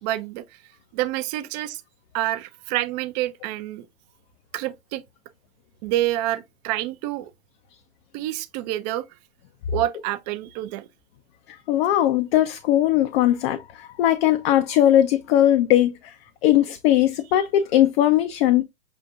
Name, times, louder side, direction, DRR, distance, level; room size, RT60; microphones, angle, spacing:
voice 1, 0.0-0.4 0.9-1.8 2.1-3.9 4.5-5.0 5.8-7.3 8.1-9.1 9.7-10.9 17.4-17.5, right 14 dB, 30° right, 0.5 m, -27 dB
voice 2, 11.7-16.1 16.4-18.6, left 12 dB, 50° left, 0.6 m, -19 dB
6.8 x 2.5 x 2.4 m
hypercardioid pair, 115°, 40 cm